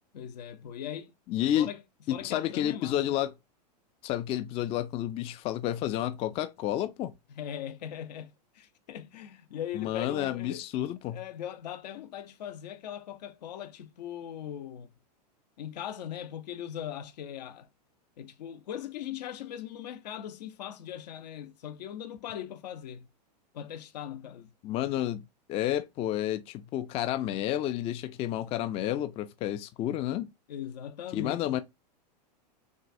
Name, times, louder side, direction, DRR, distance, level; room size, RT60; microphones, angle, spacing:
voice 1, 0.1-1.1 1.5-1.8 2.1-3.2 7.3-10.6 11.1-15.0 15.6-17.7 18.2-23.1 23.5-24.5 30.5-31.6, left 10 dB, 75° left, 0.8 m, -40 dB
voice 2, 1.3-1.7 2.1-3.3 4.0-7.1 9.7-11.2 24.6-25.2 25.5-30.3 31.1-31.6, left 12 dB, 30° left, 0.3 m, -30 dB
6.2 x 2.3 x 2.6 m
hypercardioid pair, 120°, 21 cm